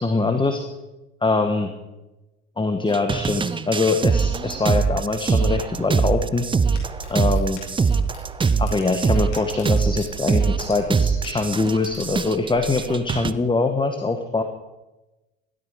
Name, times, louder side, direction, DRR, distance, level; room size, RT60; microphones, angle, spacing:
voice 1, 0.0-0.6 1.2-1.7 2.6-6.4 7.1-7.6 8.6-14.4, left 3 dB, 15° left, 7 dB, 1.5 m, -23 dB
sound 1, 2.9-13.3, right 5 dB, 15° right, 0.6 m, -22 dB
sound 2, 5.9-13.1, left 4 dB, 75° left, 6.5 m, -42 dB
16.5 x 12.5 x 4.9 m, 1.0 s
hypercardioid pair, 65°, 35 cm